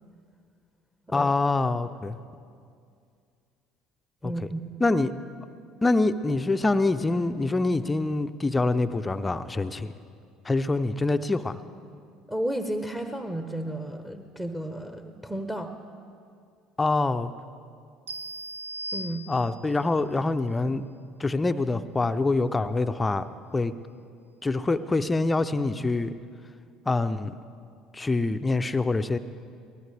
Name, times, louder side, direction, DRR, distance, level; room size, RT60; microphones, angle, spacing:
voice 1, 1.1-2.2 4.2-4.3 4.8-5.1 5.8-9.9 10.4-11.6 16.8-17.3 19.3-20.8 21.2-23.7 24.4-26.1 26.9-27.3 27.9-29.2, left 2 dB, 20° left, 10 dB, 0.6 m, -25 dB
voice 2, 4.2-4.7 12.3-15.7 18.9-19.2, right 1 dB, 10° right, 6 dB, 1.1 m, -32 dB
sound 1, 18.1-19.8, right 1 dB, 90° right, 0.4 m, -37 dB
23.0 x 18.5 x 3.4 m, 2.3 s
hypercardioid pair, 65°, 0 cm